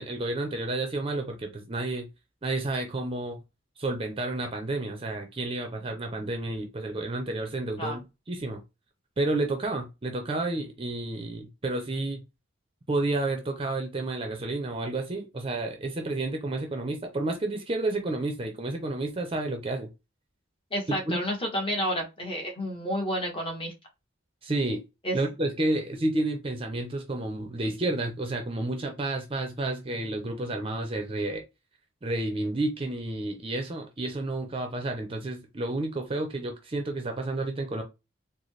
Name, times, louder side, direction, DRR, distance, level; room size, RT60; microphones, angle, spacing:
voice 1, 0.0-2.1 2.4-3.4 3.8-8.6 9.2-12.2 12.9-19.9 20.9-21.2 24.4-24.8 25.1-31.4 32.0-37.8, right 2 dB, 30° right, 0.6 m, -30 dB
voice 2, 20.7-23.7 25.0-25.2, equal, 30° left, 1.1 m, -30 dB
4.0 x 2.1 x 3.1 m
head